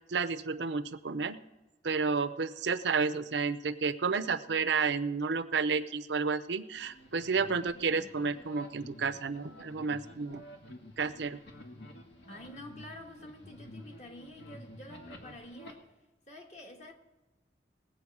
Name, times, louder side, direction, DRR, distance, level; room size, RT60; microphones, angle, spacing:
voice 1, 0.1-1.4 1.8-10.5 11.0-11.4, right 5 dB, 85° right, 0.6 m, -31 dB
sound 1, 6.7-15.7, equal, 80° left, 1.8 m, -50 dB
voice 2, 12.3-15.8 16.3-16.9, left 1 dB, 40° left, 1.5 m, -48 dB
19.5 x 7.9 x 4.8 m
head